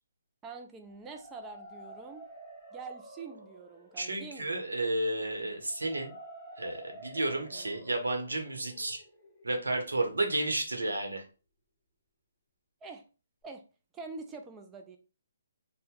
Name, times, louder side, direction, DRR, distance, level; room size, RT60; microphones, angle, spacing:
voice 1, 0.4-2.2 2.7-4.5 7.3-7.7 12.8-13.0 13.4-13.6 13.9-15.0, right 4 dB, 15° right, 4 dB, 0.3 m, -45 dB
sound 1, 0.9-10.7, right 1 dB, 15° left, 0.9 m, -51 dB
voice 2, 4.0-6.1 6.6-9.0 9.4-11.2, right 2 dB, 85° right, 4 dB, 0.8 m, -32 dB
2.8 x 2.1 x 3.5 m, 0.34 s
figure-of-eight pair, 140°, 0 cm